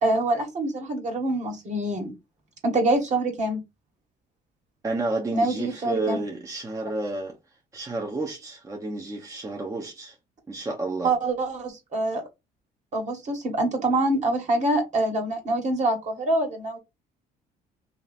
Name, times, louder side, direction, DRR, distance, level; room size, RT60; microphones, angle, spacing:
voice 1, 0.0-2.1 2.6-3.6 5.3-6.2 11.0-12.2 12.9-16.8, right 2 dB, 45° right, 1.6 m, -25 dB
voice 2, 4.8-7.4 7.7-10.2 10.5-11.1, right 2 dB, 20° right, 0.7 m, -30 dB
3.1 x 2.8 x 4.0 m
cardioid pair, 110°, 17 cm